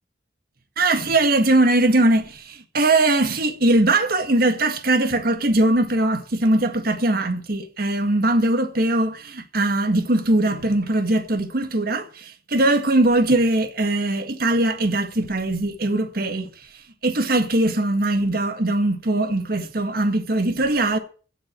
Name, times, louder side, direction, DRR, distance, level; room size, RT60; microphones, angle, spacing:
voice 1, 0.8-16.5 17.0-21.0, right 2 dB, 50° right, 1.7 m, -20 dB
16.5 x 6.2 x 7.5 m
head